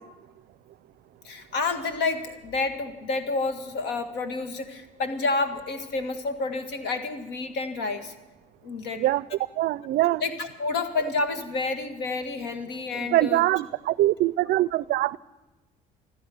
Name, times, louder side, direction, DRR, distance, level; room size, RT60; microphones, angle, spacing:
voice 1, 1.2-8.1 8.6-9.0 10.2-13.4, left 3 dB, 85° left, 1.8 m, -29 dB
voice 2, 9.6-10.2 13.0-15.2, right 15 dB, 70° right, 0.4 m, -23 dB
15.5 x 13.5 x 6.1 m
cardioid pair, 110°, 17 cm